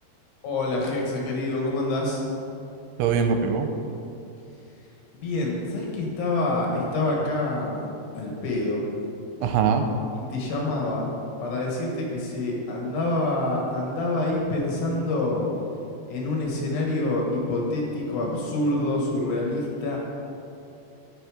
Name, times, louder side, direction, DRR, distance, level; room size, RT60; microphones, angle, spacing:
voice 1, 0.4-2.2 5.1-7.8 8.1-8.8 10.3-11.1 11.4-15.4 16.1-20.0, left 2 dB, 65° left, -2 dB, 3.3 m, -26 dB
voice 2, 3.0-3.7 9.4-9.9, right 6 dB, 90° right, 6 dB, 3.0 m, -22 dB
13.0 x 6.8 x 4.9 m, 2.7 s
omnidirectional pair, 5.4 m